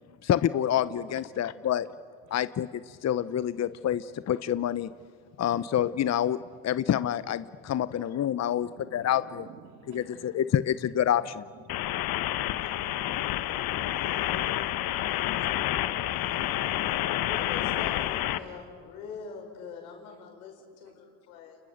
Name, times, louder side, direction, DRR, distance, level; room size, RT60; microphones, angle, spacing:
voice 1, 0.2-1.9 2.3-4.9 5.4-6.4 6.6-9.5 9.9-11.5, left 10 dB, 40° left, 15 dB, 0.8 m, -27 dB
voice 2, 8.4-10.4 11.5-18.6 20.8-20.9, right 6 dB, 85° right, 6 dB, 2.5 m, -54 dB
sound 1, 11.7-18.4, left 13 dB, 60° left, 1.1 m, -29 dB
voice 3, 17.2-21.6, left 6 dB, 85° left, 2 dB, 5.6 m, -43 dB
30.0 x 29.5 x 6.6 m, 2.1 s
hypercardioid pair, 65°, 41 cm